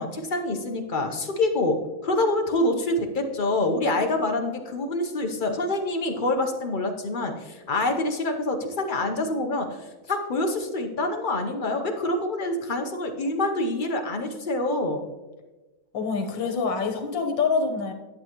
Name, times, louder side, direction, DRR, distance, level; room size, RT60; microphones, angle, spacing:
voice 1, 0.0-1.8 2.0-9.7 10.1-15.1, left 2 dB, 45° left, 4 dB, 0.6 m, -26 dB
voice 2, 15.9-17.9, left 4 dB, 90° left, 5 dB, 1.9 m, -26 dB
11.5 x 7.6 x 3.0 m, 1.1 s
omnidirectional pair, 1.9 m